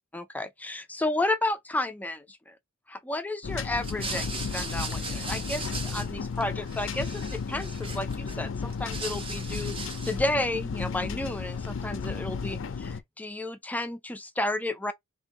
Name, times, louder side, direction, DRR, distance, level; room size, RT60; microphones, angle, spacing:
voice 1, 0.1-2.6 2.9-9.8 10.0-14.9, left 2 dB, 10° left, 0.4 m, -32 dB
sound 1, 3.4-13.0, left 5 dB, 65° left, 0.5 m, -34 dB
sound 2, 3.8-6.4 6.7-8.3 8.7-10.3, right 4 dB, 25° right, 0.9 m, -38 dB
3.5 x 2.5 x 3.6 m
head